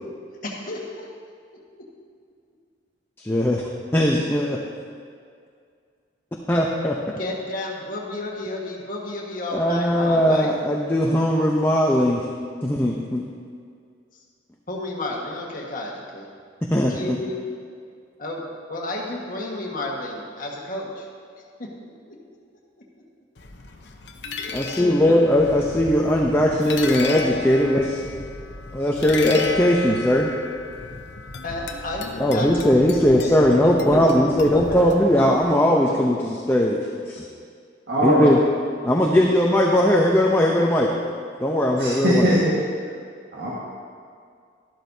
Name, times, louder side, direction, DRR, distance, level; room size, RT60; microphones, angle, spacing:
voice 1, 0.4-1.1 1.8-1.9 7.1-10.5 14.7-16.2 16.9-17.4 18.2-18.4 18.7-21.1 21.6-22.2 24.7-25.2 31.4-34.9, left 1 dB, 50° left, -2 dB, 1.5 m, -32 dB
voice 2, 3.2-3.6 3.9-4.6 6.5-7.1 9.5-12.2 12.6-13.2 16.7-17.2 24.5-28.0 28.7-30.3 32.2-36.8 37.1-37.2 38.0-38.4 38.8-40.9 41.4-42.3, equal, 15° left, -1 dB, 0.6 m, -19 dB
sound 1, 23.4-35.5, left 3 dB, 70° left, 0.8 m, -33 dB
voice 3, 37.9-38.2 41.8-42.6 43.3-43.5, equal, 80° right, -7 dB, 1.7 m, -20 dB
12.5 x 12.0 x 2.7 m, 2.2 s
head